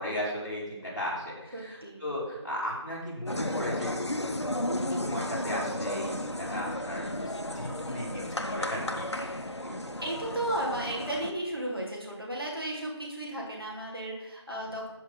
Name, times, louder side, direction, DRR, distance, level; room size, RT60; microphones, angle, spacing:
voice 1, 0.0-3.9 4.6-9.9, equal, 40° left, -7 dB, 3.1 m, -36 dB
voice 2, 1.5-2.0 10.0-14.9, right 1 dB, 50° right, -2 dB, 2.4 m, -34 dB
sound 1, 3.3-11.3, left 1 dB, 70° left, 0.9 m, -34 dB
12.5 x 4.6 x 3.9 m, 1.0 s
figure-of-eight pair, 180°, 15 cm